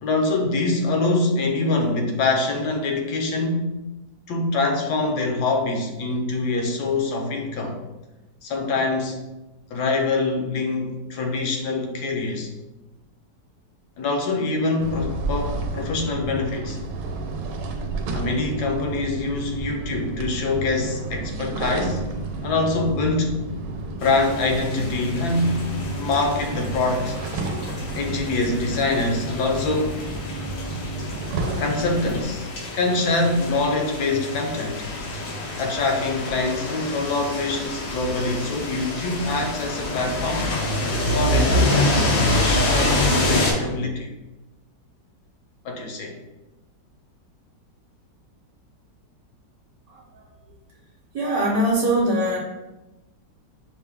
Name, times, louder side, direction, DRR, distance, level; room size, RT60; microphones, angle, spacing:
voice 1, 0.0-3.8 4.3-7.8 8.4-9.2 9.7-12.5 14.0-16.8 18.1-22.0 22.4-23.4 24.0-27.2 28.0-30.0 31.6-32.5 32.7-34.9 35.6-40.6 41.1-44.1 45.6-46.1, left 3 dB, 70° left, 3 dB, 1.2 m, -24 dB
sound 1, 14.8-32.2, right 3 dB, 85° right, 1.2 m, -31 dB
sound 2, 24.0-43.5, left 1 dB, 90° left, 1.6 m, -27 dB
voice 2, 49.9-50.2 51.1-52.4, right 1 dB, 60° right, -3 dB, 1.2 m, -22 dB
5.5 x 2.2 x 3.4 m, 1.0 s
omnidirectional pair, 1.9 m